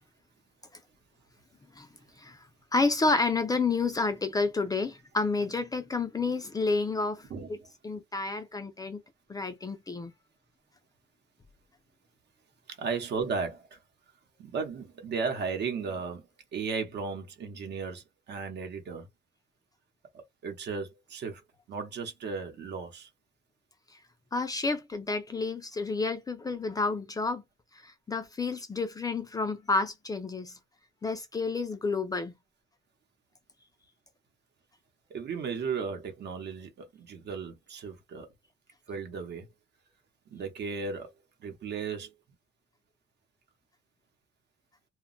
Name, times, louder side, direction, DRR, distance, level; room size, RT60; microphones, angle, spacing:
voice 1, 2.7-7.6 7.8-9.0 9.3-10.1 24.3-27.4 27.7-30.6 31.0-32.3, left 3 dB, 20° left, 0.3 m, -30 dB
voice 2, 12.8-13.6 14.4-16.2 16.5-18.0 18.3-19.0 20.4-21.3 21.7-23.1 35.1-36.7 37.1-38.3 38.9-39.4 40.3-41.1 41.4-42.1, right 5 dB, 65° right, 0.8 m, -35 dB
2.2 x 2.0 x 3.8 m
cardioid pair, 150°, 19 cm